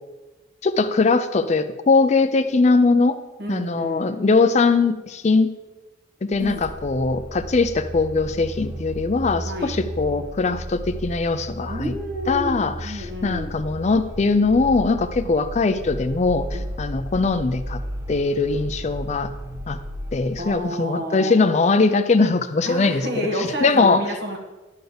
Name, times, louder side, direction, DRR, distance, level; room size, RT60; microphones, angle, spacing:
voice 1, 0.6-3.2 3.5-5.5 6.2-11.9 12.3-17.8 18.1-19.3 19.7-19.8 20.1-24.0, left 3 dB, 35° left, 10 dB, 0.4 m, -21 dB
voice 2, 3.4-4.2 6.4-6.6 9.4-9.8 11.6-13.5 15.2-15.3 16.5-16.7 20.4-21.6 22.6-24.4, equal, 60° right, 2 dB, 1.4 m, -30 dB
sound 1, 6.3-20.6, right 1 dB, 15° right, 0.5 m, -34 dB
10.5 x 4.0 x 6.8 m, 1.2 s
head